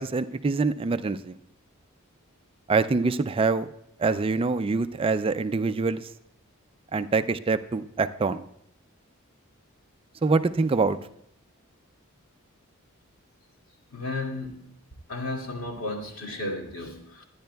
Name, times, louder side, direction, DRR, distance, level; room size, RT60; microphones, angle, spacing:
voice 1, 0.0-1.4 2.7-3.7 4.0-6.1 6.9-8.4 10.2-11.0, right 4 dB, 25° right, 11 dB, 0.4 m, -25 dB
voice 2, 13.9-14.6 15.1-17.2, left 2 dB, 75° left, 1 dB, 2.2 m, -33 dB
24.5 x 10.5 x 2.3 m, 0.74 s
head